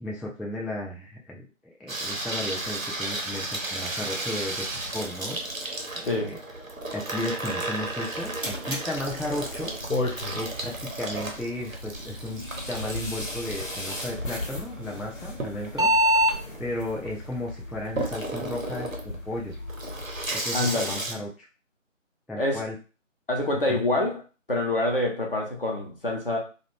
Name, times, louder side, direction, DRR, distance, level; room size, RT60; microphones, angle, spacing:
voice 1, 0.0-1.5 1.8-5.4 6.0-6.4 6.9-16.2 16.6-19.5 20.3-21.5 22.3-22.8 23.7-23.8, left 1 dB, 5° right, -2 dB, 0.3 m, -34 dB
Water tap faucet / Sink (filling or washing), 1.9-21.1, right 2 dB, 85° right, 0.9 m, -34 dB
voice 2, 6.0-6.3 20.5-20.9 22.4-22.6 23.3-24.2 24.5-26.4, left 2 dB, 45° left, 0 dB, 0.7 m, -26 dB
sound 1, 7.9-16.4, equal, 40° right, 0.8 m, -31 dB
sound 2, 9.0-20.3, left 2 dB, 80° left, 0.9 m, -37 dB
2.4 x 2.1 x 3.2 m, 0.33 s
figure-of-eight pair, 160°, 39 cm